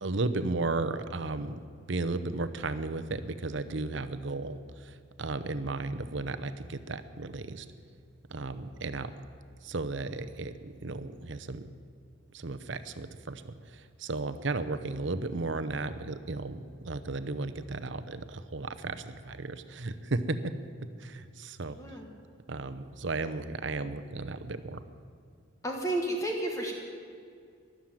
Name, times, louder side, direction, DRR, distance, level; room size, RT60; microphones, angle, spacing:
voice 1, 0.0-1.6 1.9-7.7 8.3-9.1 9.6-11.6 12.3-20.5 21.0-21.8 22.5-24.8, right 3 dB, 65° right, 10 dB, 0.8 m, -34 dB
voice 2, 21.8-22.1 25.6-26.7, right 1 dB, 15° left, 1 dB, 1.6 m, -31 dB
13.5 x 11.5 x 9.0 m, 2.3 s
head